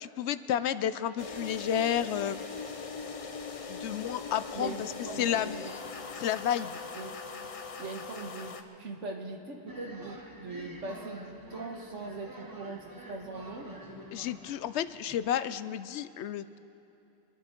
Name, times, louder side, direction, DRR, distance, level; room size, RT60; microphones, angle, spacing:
voice 1, 0.0-2.4 3.7-5.6 6.2-6.8 14.1-16.6, left 10 dB, 70° left, 14 dB, 0.8 m, -31 dB
sound 1, 1.2-8.6, left 5 dB, 35° left, 0.7 m, -40 dB
voice 2, 4.5-5.7 7.0-7.2 7.8-13.8, right 3 dB, 85° right, 2 dB, 1.8 m, -41 dB
sound 2, 9.7-15.2, right 1 dB, 20° right, 1.0 m, -48 dB
26.0 x 11.5 x 4.5 m, 2.7 s
omnidirectional pair, 1.2 m